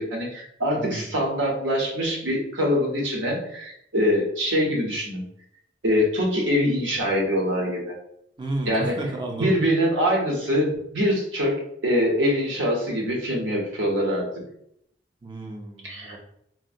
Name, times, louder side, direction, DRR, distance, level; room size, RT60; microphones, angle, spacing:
voice 1, 0.0-5.2 5.8-7.9 8.7-9.0 9.4-11.6 11.8-14.3 15.8-16.2, equal, 80° right, -1 dB, 0.9 m, -24 dB
voice 2, 8.4-9.5 15.2-16.2, right 1 dB, 25° right, 2 dB, 0.5 m, -32 dB
3.6 x 2.1 x 2.6 m, 0.71 s
head